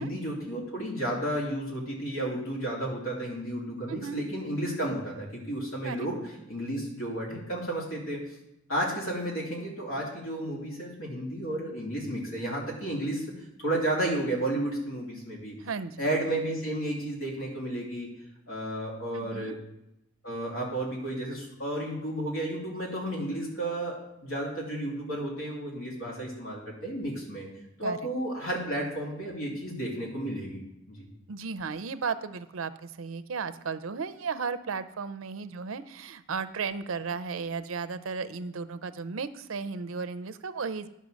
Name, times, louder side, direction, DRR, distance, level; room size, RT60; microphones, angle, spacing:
voice 1, 0.0-6.2 6.5-8.2 8.7-13.2 13.6-15.6 16.0-18.1 18.5-19.6 20.2-27.5 27.8-30.6 30.9-31.0, right 1 dB, 85° left, -3 dB, 2.6 m, -32 dB
voice 2, 3.9-4.2 5.8-6.0 15.6-16.0 19.1-19.6 27.8-28.0 31.3-40.9, right 5 dB, 75° right, 14 dB, 0.5 m, -35 dB
11.0 x 5.6 x 6.3 m, 0.84 s
head